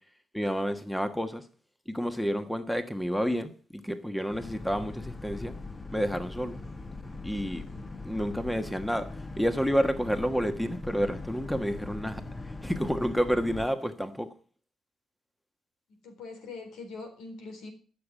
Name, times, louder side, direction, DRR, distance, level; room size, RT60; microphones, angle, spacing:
voice 1, 0.3-1.4 1.9-5.5 5.9-6.6 7.2-7.7 8.0-9.0 9.4-12.2 12.6-14.3, equal, 5° left, 1.3 m, -29 dB
Boat Water vehicle, 4.3-13.7, left 3 dB, 20° left, 1.3 m, -41 dB
voice 2, 16.0-17.7, left 3 dB, 85° left, 4.1 m, -42 dB
13.5 x 6.8 x 7.5 m
cardioid pair, 90°, 0 cm